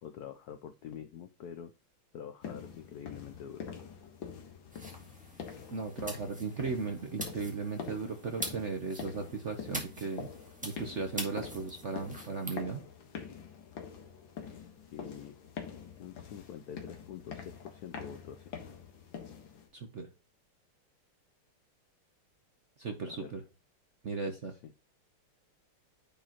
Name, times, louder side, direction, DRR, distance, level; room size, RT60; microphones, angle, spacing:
voice 1, 0.0-1.7 2.1-3.7 14.5-15.4 16.0-18.4 23.1-23.3 24.3-24.7, left 8 dB, 80° left, 8 dB, 0.8 m, -46 dB
sound 1, 2.4-19.7, left 7 dB, 65° left, 2.1 m, -46 dB
sound 2, 4.7-12.6, equal, 5° right, 1.6 m, -45 dB
voice 2, 5.7-10.3 10.6-12.8 19.7-20.1 22.8-23.4 24.0-24.5, right 4 dB, 50° right, 5 dB, 0.8 m, -36 dB
9.9 x 4.8 x 2.9 m, 0.32 s
omnidirectional pair, 2.4 m